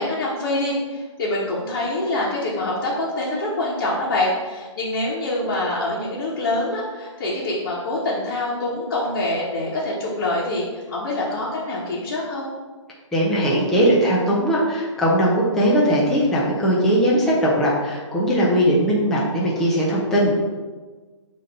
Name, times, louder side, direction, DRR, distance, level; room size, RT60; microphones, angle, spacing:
voice 1, 0.0-12.5, left 2 dB, 35° left, -7 dB, 1.2 m, -25 dB
voice 2, 13.1-20.3, equal, ahead, -6 dB, 0.4 m, -19 dB
6.4 x 2.9 x 5.2 m, 1.3 s
hypercardioid pair, 165°, 17 cm